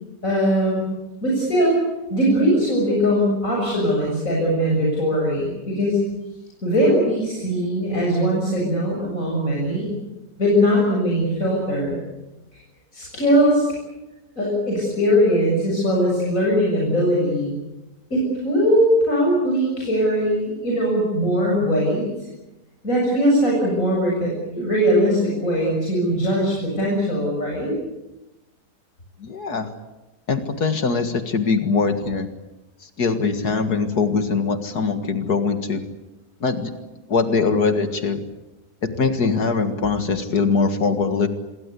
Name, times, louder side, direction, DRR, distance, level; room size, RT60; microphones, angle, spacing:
voice 1, 0.2-0.9 1.2-1.8 2.1-6.0 6.6-9.9 10.4-12.0 12.5-12.6 12.9-13.7 14.4-17.5 18.1-22.1 22.8-27.8, equal, 50° left, -3 dB, 7.9 m, -20 dB
voice 2, 29.2-29.7 30.3-32.3 32.8-35.8 36.4-36.7 37.1-38.2 38.8-41.3, left 4 dB, 65° left, 8 dB, 2.3 m, -22 dB
27.0 x 22.5 x 8.4 m, 1.0 s
omnidirectional pair, 1.8 m